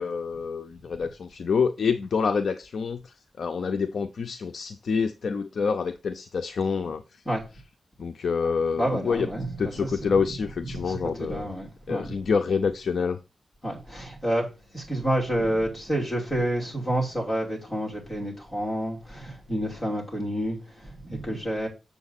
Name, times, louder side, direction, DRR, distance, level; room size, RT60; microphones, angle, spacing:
voice 1, 0.0-7.0 8.0-9.3 9.6-11.5 11.9-13.2, left 5 dB, 65° left, 0.5 m, -27 dB
voice 2, 8.7-10.2 10.6-12.1 13.6-14.5 14.7-21.7, right 1 dB, 15° left, 2.9 m, -29 dB
7.2 x 7.0 x 4.1 m
wide cardioid pair, 175°, 0 cm